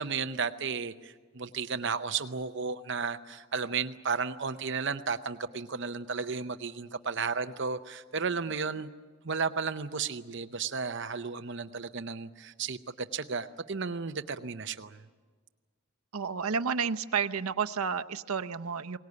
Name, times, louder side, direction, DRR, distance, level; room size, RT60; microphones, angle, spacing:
voice 1, 0.0-8.9 9.2-15.0, right 5 dB, 55° right, 10 dB, 0.7 m, -33 dB
voice 2, 16.1-19.0, right 6 dB, 85° right, 9 dB, 0.8 m, -31 dB
22.5 x 19.0 x 9.6 m, 1.4 s
head